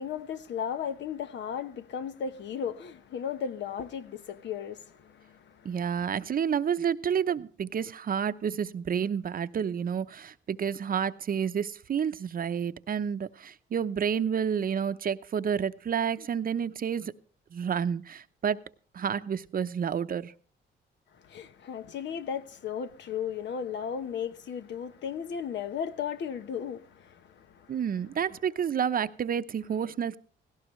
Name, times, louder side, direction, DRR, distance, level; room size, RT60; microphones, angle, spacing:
voice 1, 0.0-5.8 21.2-27.8, left 7 dB, 65° left, 1.1 m, -35 dB
voice 2, 5.6-17.1 17.5-18.6 18.9-20.3 27.7-30.2, right 7 dB, 45° right, 0.8 m, -30 dB
17.0 x 17.0 x 3.2 m
cardioid pair, 90°, 20 cm